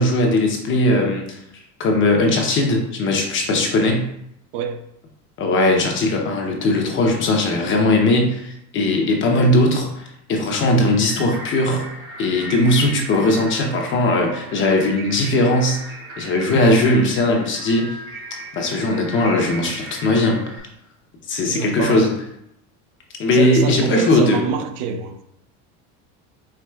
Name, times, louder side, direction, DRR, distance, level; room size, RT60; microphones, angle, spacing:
voice 1, 0.0-1.4 1.8-4.1 5.4-11.9 12.2-18.0 18.5-20.4 21.3-22.1 23.2-24.4, left 1 dB, 30° left, 0.8 m, -19 dB
sound 1, 11.0-20.6, right 2 dB, 40° right, 1.1 m, -37 dB
voice 2, 21.4-22.1 23.3-25.2, right 6 dB, 70° right, 0.6 m, -27 dB
4.7 x 3.5 x 2.3 m
supercardioid pair, 140°, 37 cm